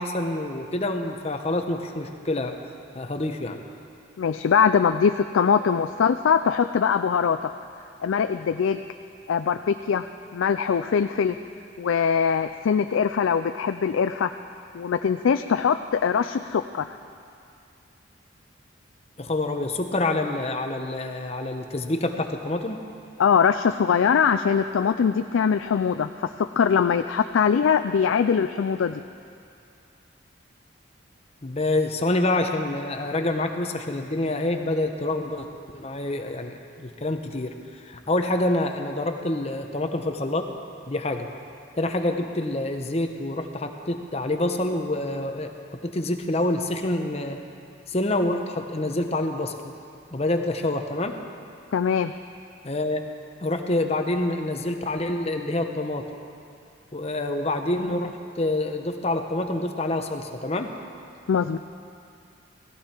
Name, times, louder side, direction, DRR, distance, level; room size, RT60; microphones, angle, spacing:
voice 1, 0.0-2.6 2.9-3.6 19.2-22.8 31.4-35.5 35.7-37.5 37.8-40.5 40.9-41.3 41.8-45.5 45.8-47.4 47.9-49.7 50.1-51.2 52.6-53.0 53.4-56.1 56.9-60.7, left 2 dB, 30° left, 5 dB, 0.9 m, -27 dB
voice 2, 4.2-7.5 8.0-8.8 9.3-10.1 10.3-11.4 11.8-14.3 14.7-16.9 23.2-29.0 51.7-52.1 61.3-61.6, left 6 dB, 90° left, 9 dB, 0.4 m, -22 dB
17.0 x 15.0 x 4.5 m, 2.4 s
head